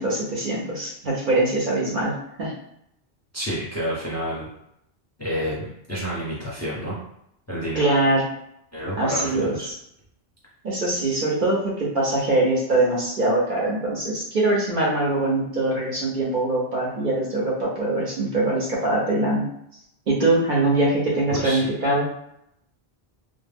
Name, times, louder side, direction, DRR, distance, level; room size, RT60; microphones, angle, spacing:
voice 1, 0.0-2.5 7.7-8.3 9.0-9.7 10.6-19.5 20.1-22.1, right 2 dB, 55° right, -4 dB, 0.7 m, -23 dB
voice 2, 3.3-4.5 5.2-7.0 7.5-7.8 8.7-9.7 21.3-21.6, equal, 15° left, -7 dB, 0.6 m, -29 dB
2.1 x 2.1 x 3.3 m, 0.77 s
omnidirectional pair, 1.1 m